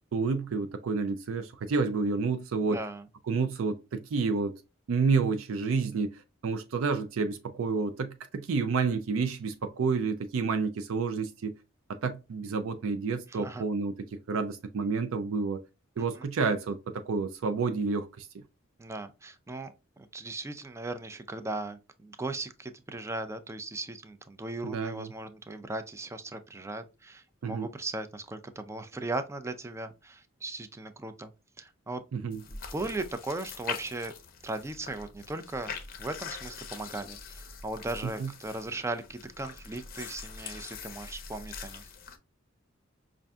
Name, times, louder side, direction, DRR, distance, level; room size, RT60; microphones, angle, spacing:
voice 1, 0.1-2.8 3.3-4.6 4.9-11.5 12.0-15.6 16.0-18.3 24.6-25.1 27.4-27.7 32.1-32.4 38.2-38.3, right 4 dB, 80° right, 0.4 m, -29 dB
voice 2, 2.7-3.1 13.3-13.6 16.0-16.3 18.8-31.3 31.6-32.0 32.5-34.1 34.4-35.7 36.0-41.9, right 2 dB, 15° right, 0.3 m, -38 dB
sound 1, 32.3-42.2, left 6 dB, 45° left, 0.6 m, -43 dB
5.3 x 2.5 x 2.3 m
head